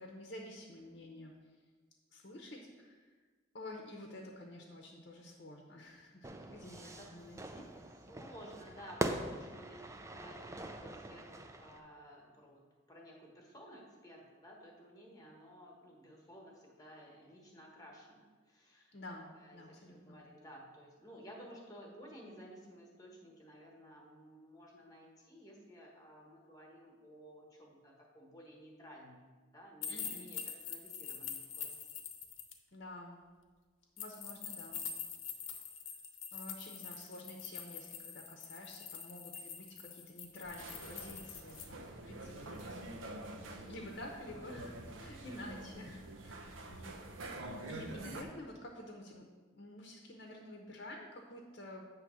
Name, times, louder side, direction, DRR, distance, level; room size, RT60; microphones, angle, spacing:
voice 1, 0.0-1.3 2.1-3.1 3.5-7.7 18.9-20.2 29.9-30.3 32.7-33.2 34.0-34.9 36.3-47.0 47.7-49.3 49.5-51.8, left 1 dB, 55° left, 1 dB, 0.8 m, -50 dB
Fire / Fireworks, 6.2-11.8, right 1 dB, 15° right, 0.3 m, -42 dB
voice 2, 6.7-7.1 8.1-18.9 19.4-29.2 29.5-31.8, equal, 20° left, -1 dB, 1.2 m, -55 dB
sound 1, 29.8-32.5 34.0-41.7, left 7 dB, 80° left, 0.8 m, -45 dB
sound 2, 40.4-48.2, right 2 dB, 85° right, 0.7 m, -47 dB
8.6 x 3.2 x 6.2 m, 1.4 s
head